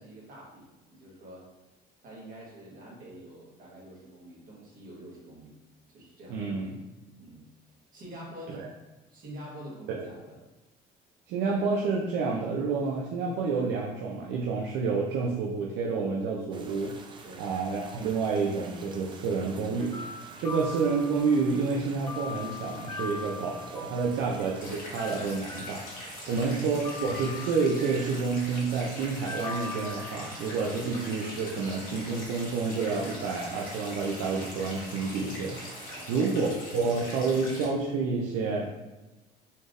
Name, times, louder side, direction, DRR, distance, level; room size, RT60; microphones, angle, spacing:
voice 1, 0.0-1.5 2.0-5.6 5.9-6.8 7.2-7.4 7.9-8.7 9.1-10.4 17.2-17.5 20.4-20.6 26.2-26.5 35.9-36.9, right 1 dB, 50° right, -5 dB, 1.4 m, -46 dB
voice 2, 6.3-6.7 9.9-10.0 11.3-16.9 17.4-25.8 26.3-35.6 36.1-38.7, right 4 dB, 80° right, -2 dB, 0.5 m, -29 dB
sound 1, 16.5-36.0, right 3 dB, 25° right, 0.4 m, -49 dB
sound 2, 19.8-21.6 22.1-24.6 25.0-26.4 26.8-28.2 29.3-30.7, left 3 dB, 20° left, 0.7 m, -41 dB
sound 3, 24.6-37.7, left 1 dB, 50° left, 1.3 m, -43 dB
4.2 x 3.3 x 2.5 m, 1.1 s
cardioid pair, 145°, 18 cm